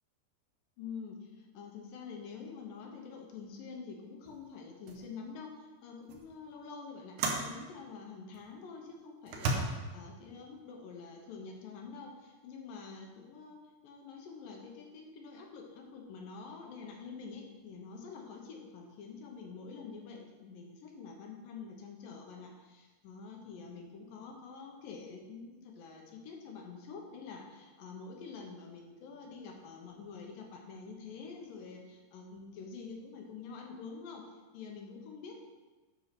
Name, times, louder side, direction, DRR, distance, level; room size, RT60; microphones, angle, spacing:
voice 1, 0.8-35.4, left 5 dB, 70° left, 1 dB, 2.5 m, -47 dB
sound 1, 4.3-4.4 4.9-5.1 6.1-6.2 7.2-7.5 8.3-8.5 9.3-9.6, right 3 dB, 70° right, 2.1 m, -33 dB
10.5 x 4.7 x 5.8 m, 1.2 s
omnidirectional pair, 4.5 m